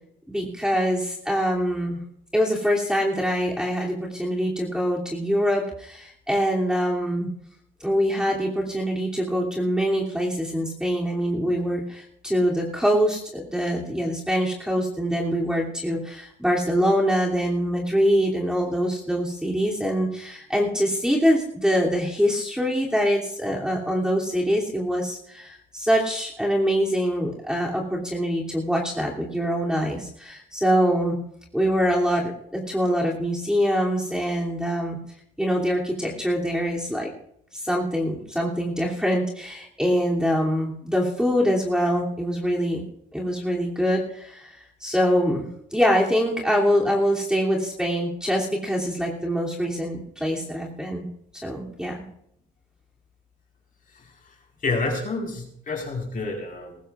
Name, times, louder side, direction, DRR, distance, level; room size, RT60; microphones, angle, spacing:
voice 1, 0.3-2.0 2.3-7.3 7.8-31.2 31.5-35.0 35.4-37.1 37.6-42.8 43.1-45.5 45.7-51.1 51.4-52.0, equal, 5° right, -3 dB, 2.8 m, -24 dB
voice 2, 53.9-54.3 54.6-56.8, left 3 dB, 45° left, 1 dB, 4.6 m, -29 dB
20.0 x 15.0 x 2.5 m, 0.70 s
cardioid pair, 90°, 20 cm